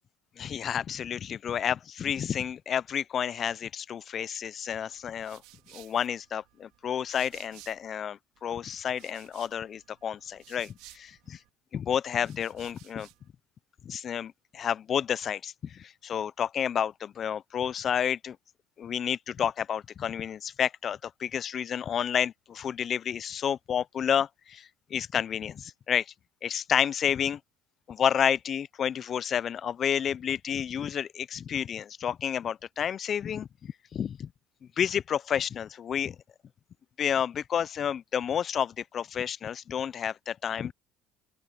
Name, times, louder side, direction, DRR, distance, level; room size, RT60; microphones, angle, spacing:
voice 1, 0.4-5.4 5.7-11.1 11.7-13.1 13.8-18.4 18.8-26.1 26.4-27.4 27.9-34.3 34.8-36.2 37.0-40.7, left 8 dB, 45° left, 0.7 m, -30 dB
sound 1, 4.9-8.0 8.3-11.5 12.0-13.3, right 20 dB, 75° right, 2.5 m, -56 dB
open air
hypercardioid pair, 75°, 0 cm